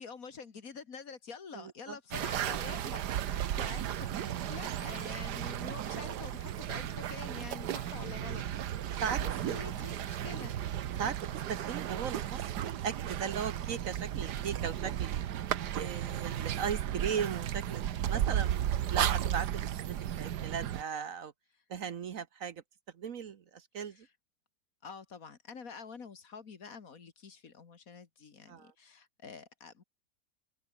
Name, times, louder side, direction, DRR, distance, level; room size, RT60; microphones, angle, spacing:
voice 1, 0.0-10.6 23.9-24.1 24.8-29.8, left 5 dB, 55° left, 2.2 m, -47 dB
voice 2, 1.5-2.0 4.2-4.5 9.0-9.2 9.5-9.6 10.2-10.3 11.0-11.2 11.5-15.2 15.7-21.3 21.7-22.6 22.9-24.0 28.5-28.7, right 7 dB, 55° right, 1.3 m, -38 dB
sound 1, 2.1-20.8, right 11 dB, 75° right, 1.5 m, -34 dB
open air
omnidirectional pair, 1.8 m